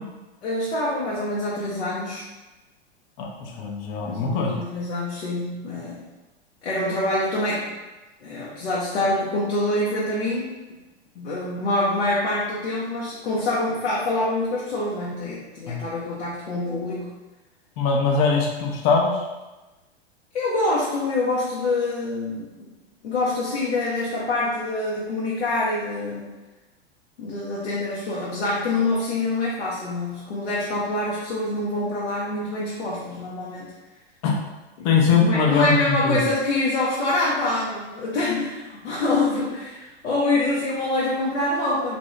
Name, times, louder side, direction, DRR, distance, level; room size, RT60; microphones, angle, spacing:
voice 1, 0.4-2.2 4.0-6.0 6.6-7.7 8.2-10.5 11.1-17.1 20.3-22.7 23.0-26.3 27.2-33.7 34.8-34.9 35.2-42.0, left 2 dB, 80° left, -6 dB, 0.8 m, -25 dB
voice 2, 3.2-4.5 15.7-15.8 17.8-19.2 34.2-34.3 34.8-36.2, left 4 dB, 45° left, -1 dB, 0.7 m, -21 dB
2.7 x 2.6 x 3.2 m, 1.1 s
hypercardioid pair, 115°, 33 cm